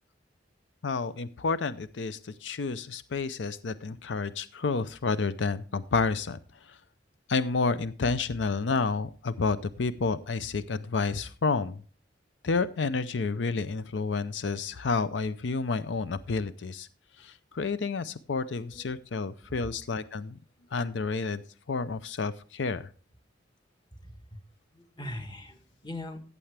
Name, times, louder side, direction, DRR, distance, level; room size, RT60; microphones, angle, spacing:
voice 1, 0.8-6.4 6.7-6.8 7.3-11.8 12.4-16.9 17.2-20.4 20.7-21.4 21.7-22.9, left 4 dB, 90° left, 14 dB, 0.6 m, -30 dB
voice 2, 24.0-24.4 24.7-26.2, left 1 dB, 25° left, 6 dB, 1.3 m, -41 dB
14.5 x 8.4 x 3.4 m, 0.40 s
head